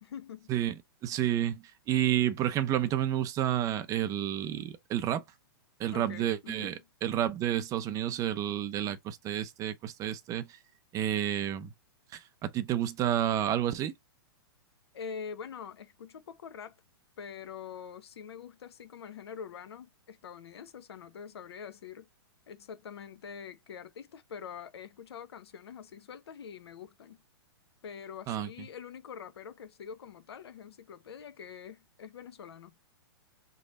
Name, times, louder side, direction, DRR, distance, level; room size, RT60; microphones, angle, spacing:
voice 1, 0.0-0.5 5.9-6.9 14.9-16.8 17.2-22.1 22.5-27.2 27.8-32.8, left 7 dB, 75° left, 0.8 m, -45 dB
voice 2, 1.0-5.2 5.8-6.7 7.0-10.5 10.9-11.7 12.1-13.9 28.3-28.5, right 11 dB, 25° right, 0.4 m, -30 dB
3.2 x 2.1 x 4.0 m
hypercardioid pair, 125°, 13 cm